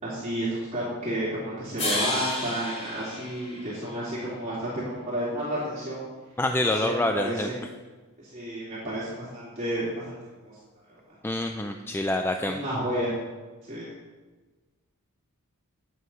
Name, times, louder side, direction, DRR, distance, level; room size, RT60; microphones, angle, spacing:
voice 1, 0.0-6.0 6.6-7.5 8.2-10.2 10.4-10.5 11.5-11.8 12.4-13.1 13.7-13.9, right 1 dB, 30° right, -10 dB, 3.0 m, -31 dB
sound 1, 1.8-4.1, left 1 dB, 30° left, 2.2 m, -31 dB
voice 2, 6.4-7.5 11.2-12.6, left 1 dB, 10° left, 5 dB, 0.4 m, -26 dB
9.9 x 8.2 x 5.6 m, 1.3 s
head